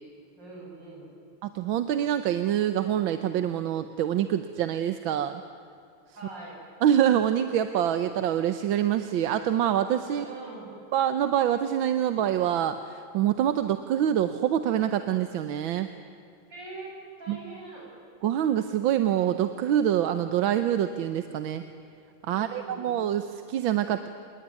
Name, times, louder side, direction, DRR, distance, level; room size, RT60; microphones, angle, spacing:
voice 1, 0.4-1.1 6.1-6.6 10.1-10.7 13.6-13.7 16.5-16.9 17.2-17.9 22.2-23.0, right 2 dB, 55° right, -3 dB, 8.4 m, -43 dB
voice 2, 1.4-5.4 6.8-10.2 10.9-15.9 17.3-17.4 18.2-21.6 22.3-24.1, right 10 dB, 75° right, 9 dB, 1.6 m, -25 dB
27.0 x 20.5 x 9.5 m, 2.4 s
omnidirectional pair, 2.3 m